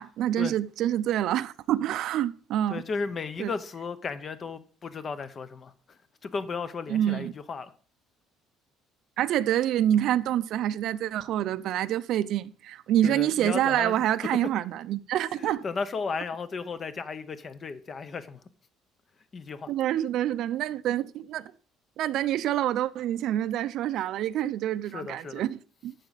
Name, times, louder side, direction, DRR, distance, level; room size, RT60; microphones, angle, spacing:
voice 1, 0.0-2.8 3.4-3.5 6.9-7.3 9.2-15.6 19.7-21.5 22.0-25.9, right 12 dB, 55° right, 0.6 m, -27 dB
voice 2, 2.7-7.7 13.0-14.0 14.4-14.5 15.4-18.4 19.3-19.7 24.9-25.4, left 5 dB, 25° left, 0.8 m, -35 dB
11.5 x 7.6 x 4.1 m
cardioid pair, 165°, 0 cm